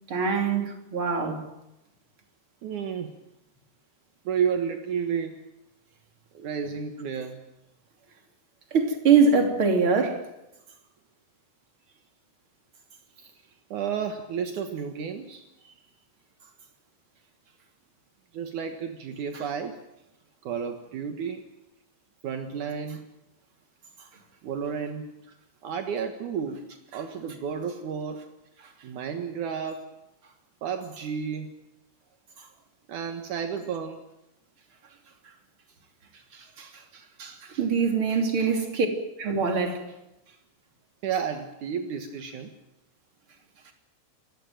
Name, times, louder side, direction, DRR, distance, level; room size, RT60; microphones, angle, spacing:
voice 1, 0.1-1.4 8.7-10.3 36.3-36.8 37.2-38.9 39.2-39.9, right 5 dB, 30° right, 3.1 m, -24 dB
voice 2, 2.6-3.1 4.2-5.4 6.3-7.4 13.2-13.3 13.7-15.5 18.3-19.9 20.4-21.4 22.2-23.0 24.4-25.1 25.6-28.2 28.8-29.9 30.6-31.6 32.9-34.1 38.2-38.6 41.0-42.5, right 7 dB, 70° right, 1.9 m, -32 dB
29.0 x 15.5 x 9.1 m
omnidirectional pair, 5.8 m